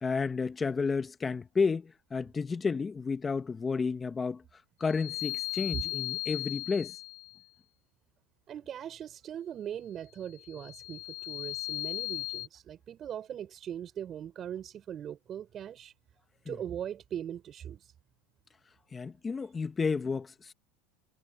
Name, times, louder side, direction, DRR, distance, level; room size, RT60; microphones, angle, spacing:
voice 1, 0.0-4.4 4.8-7.0 16.4-16.6 18.9-20.5, left 5 dB, 20° left, 1.5 m, -31 dB
sound 1, 4.8-7.4 10.4-12.5, left 26 dB, 75° left, 0.7 m, -37 dB
voice 2, 8.5-15.9 16.5-17.9, right 9 dB, 35° right, 6.4 m, -40 dB
supercardioid pair, 110°, 0 cm